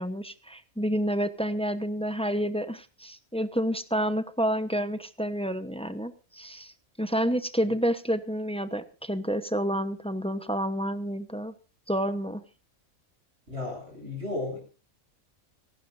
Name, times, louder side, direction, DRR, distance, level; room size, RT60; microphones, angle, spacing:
voice 1, 0.0-6.7 7.0-11.5 11.9-12.4, equal, 5° left, 10 dB, 0.7 m, -29 dB
voice 2, 13.5-14.6, left 2 dB, 50° right, 1 dB, 8.3 m, -34 dB
29.5 x 12.0 x 2.6 m, 0.34 s
omnidirectional pair, 1.5 m